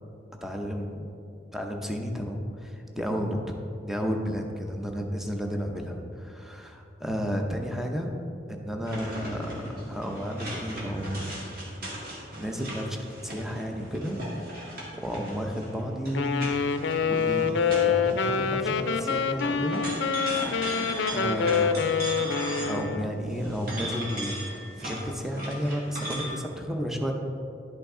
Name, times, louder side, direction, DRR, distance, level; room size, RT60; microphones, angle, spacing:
voice 1, 0.4-1.1 1.5-3.4 3.8-8.1 8.5-11.5 12.0-14.2 14.6-16.5 17.0-19.8 21.1-22.0 22.6-27.1, equal, ahead, 2 dB, 0.6 m, -32 dB
sound 1, 8.8-18.4 18.7-23.0 23.3-26.3, equal, 55° right, 2.1 m, -38 dB
Wind instrument woodwind instrument, 16.1-23.1, left 6 dB, 75° left, 0.4 m, -26 dB
11.0 x 5.7 x 3.7 m, 2.6 s
head